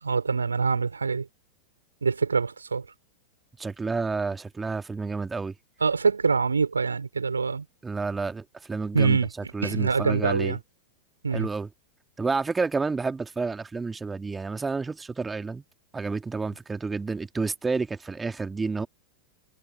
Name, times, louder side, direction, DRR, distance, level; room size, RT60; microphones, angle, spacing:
voice 1, 0.0-1.3 2.0-2.8 5.8-7.6 8.9-10.6 11.2-11.5, right 5 dB, 75° right, 3.2 m, -25 dB
voice 2, 3.6-5.5 7.8-9.2 9.5-10.6 11.3-11.7 12.2-15.6 15.9-18.9, right 4 dB, 10° right, 2.0 m, -30 dB
figure-of-eight pair, 90°, 0 cm